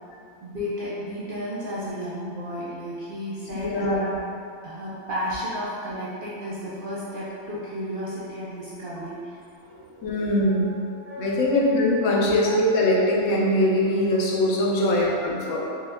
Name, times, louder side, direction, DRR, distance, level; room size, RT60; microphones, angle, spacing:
voice 1, 0.4-4.2 4.6-10.1 10.4-11.5 12.0-12.3 14.6-14.9, equal, 55° right, -9 dB, 0.6 m, -33 dB
voice 2, 3.5-4.0 10.0-10.8 11.2-15.6, left 1 dB, 75° left, -3 dB, 1.0 m, -22 dB
5.1 x 2.2 x 2.2 m, 2.4 s
omnidirectional pair, 1.4 m